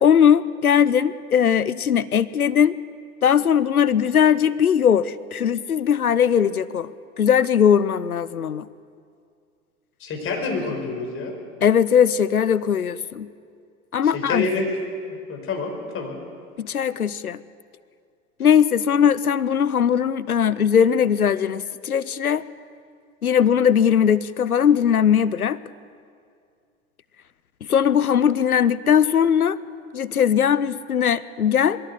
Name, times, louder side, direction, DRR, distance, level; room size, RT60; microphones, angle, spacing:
voice 1, 0.0-2.8 3.2-6.9 7.2-8.7 11.6-13.3 13.9-14.5 16.6-17.4 18.4-22.4 23.2-25.6 27.7-29.6 29.9-31.8, left 8 dB, 90° left, 17 dB, 0.8 m, -19 dB
voice 2, 10.0-11.3 14.1-14.7 15.3-16.2, left 4 dB, 30° left, 2 dB, 5.2 m, -27 dB
21.5 x 16.0 x 8.3 m, 2.3 s
figure-of-eight pair, 95°, 43 cm